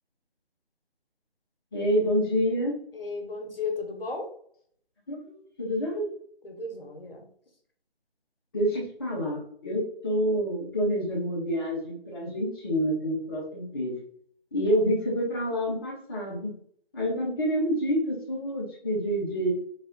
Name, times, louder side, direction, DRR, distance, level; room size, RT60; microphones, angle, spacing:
voice 1, 1.7-2.8 5.1-6.1 8.5-13.9 14.5-16.5 16.9-19.5, equal, 20° left, -5 dB, 0.9 m, -28 dB
voice 2, 2.9-4.3 6.4-7.3, left 4 dB, 65° left, 2 dB, 1.2 m, -34 dB
4.1 x 2.7 x 3.7 m, 0.62 s
figure-of-eight pair, 155°, 32 cm